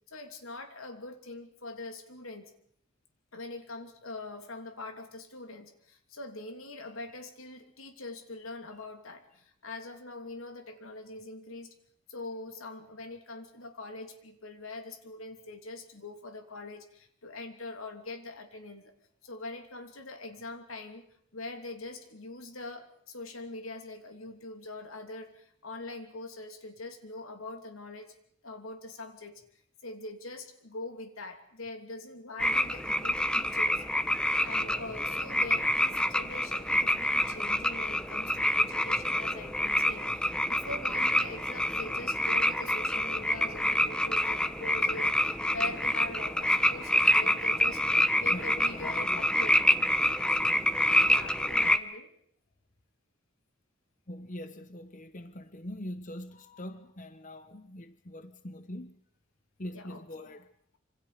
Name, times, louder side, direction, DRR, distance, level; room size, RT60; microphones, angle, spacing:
voice 1, 0.1-2.5 3.3-11.7 12.1-18.9 19.2-21.1 21.3-28.2 28.4-29.4 29.8-33.8 34.4-49.6 51.0-52.1 59.7-60.4, left 2 dB, 90° left, 2.9 m, -43 dB
sound 1, 32.4-51.8, left 1 dB, 5° left, 0.9 m, -27 dB
voice 2, 48.3-49.3 54.1-59.0 59.6-60.5, left 1 dB, 40° left, 0.9 m, -43 dB
26.5 x 26.0 x 5.1 m
head